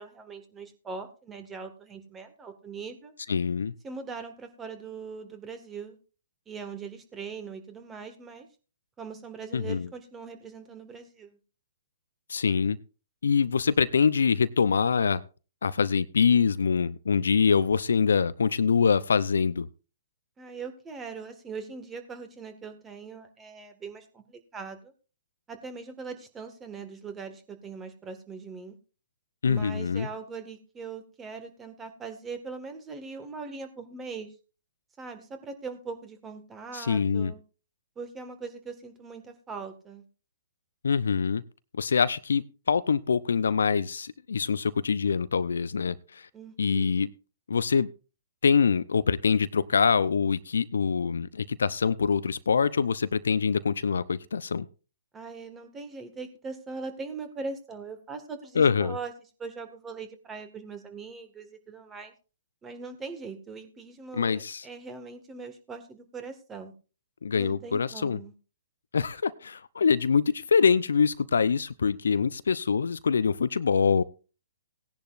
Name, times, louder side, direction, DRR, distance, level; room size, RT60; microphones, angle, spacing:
voice 1, 0.0-3.1 3.8-6.0 6.5-8.5 9.0-11.4 20.4-24.9 25.5-28.7 29.4-34.3 35.0-37.4 37.9-40.0 46.3-46.9 55.1-59.1 59.4-62.1 62.6-66.7 67.4-68.3, right 4 dB, 15° right, 8 dB, 1.8 m, -41 dB
voice 2, 3.3-3.7 9.5-9.9 12.3-12.8 13.2-15.2 15.6-19.7 29.4-30.1 36.7-37.3 40.8-41.4 41.8-46.3 46.6-47.1 47.5-47.9 48.4-54.7 58.6-59.0 64.1-64.6 67.2-68.2 68.9-74.0, left 6 dB, 75° left, 16 dB, 0.6 m, -24 dB
17.5 x 10.5 x 2.5 m, 0.34 s
figure-of-eight pair, 125°, 0 cm